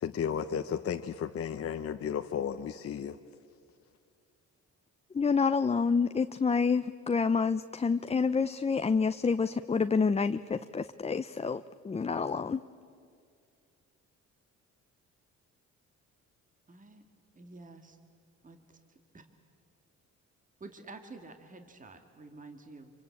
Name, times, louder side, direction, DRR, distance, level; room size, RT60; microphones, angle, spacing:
voice 1, 0.0-3.2, left 8 dB, 50° left, 7 dB, 0.9 m, -33 dB
voice 2, 5.1-12.6, left 5 dB, 20° left, 10 dB, 0.6 m, -28 dB
voice 3, 16.7-17.0 17.3-18.0 18.4-18.8 19.1-19.2 20.6-22.9, right 3 dB, 25° right, 5 dB, 2.1 m, -49 dB
26.0 x 25.0 x 8.5 m, 2.3 s
cardioid pair, 90°, 30 cm